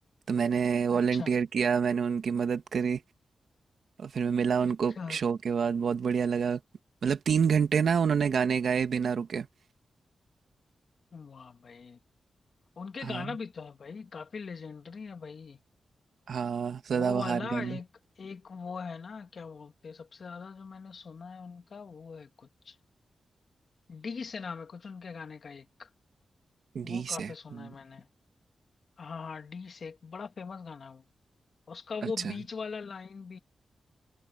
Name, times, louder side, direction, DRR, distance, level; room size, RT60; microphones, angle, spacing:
voice 1, 0.3-3.0 4.0-6.6 7.0-9.5 13.0-13.3 16.3-17.8 26.7-27.7 32.0-32.3, right 6 dB, 65° right, 1.5 m, -28 dB
voice 2, 0.9-1.3 4.6-5.2 11.1-12.0 12.8-15.6 16.9-17.9 18.2-22.8 23.9-25.9 26.8-28.1 29.0-31.0 31.7-33.4, left 5 dB, 50° left, 1.9 m, -41 dB
wide cardioid pair, 175°, 0 cm